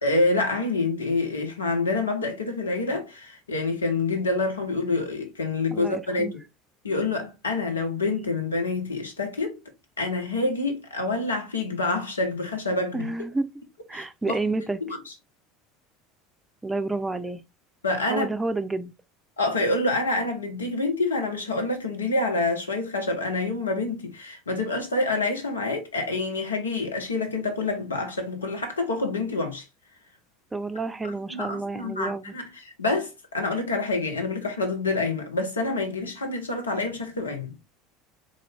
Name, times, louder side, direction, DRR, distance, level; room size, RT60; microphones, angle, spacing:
voice 1, 0.0-6.4 6.8-9.6 10.0-13.1 13.9-14.4 14.8-15.1 17.8-18.3 19.4-29.7 31.0-37.5, left 2 dB, 80° left, 0.8 m, -27 dB
voice 2, 5.7-6.3 12.9-13.5 13.9-14.8 16.6-17.4 18.1-18.9 30.5-32.3, right 3 dB, 10° right, 0.5 m, -29 dB
3.8 x 2.6 x 3.3 m
figure-of-eight pair, 70°, 0 cm